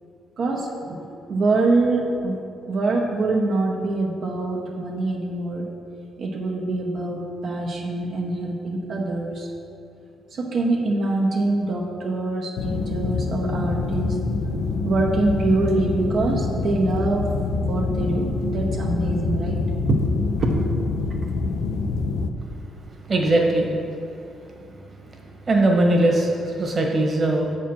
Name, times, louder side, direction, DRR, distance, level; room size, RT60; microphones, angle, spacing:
voice 1, 0.4-1.0 1.3-5.7 6.2-9.5 10.3-14.2 14.5-17.2 17.5-19.6 19.9-20.6, right 2 dB, 60° right, -1 dB, 0.8 m, -24 dB
sound 1, 12.6-22.3, left 3 dB, 80° left, 0.5 m, -26 dB
voice 2, 22.8-23.7 24.6-27.5, right 1 dB, 40° right, 0 dB, 1.4 m, -21 dB
7.2 x 4.5 x 6.0 m, 2.5 s
cardioid pair, 90°, 0 cm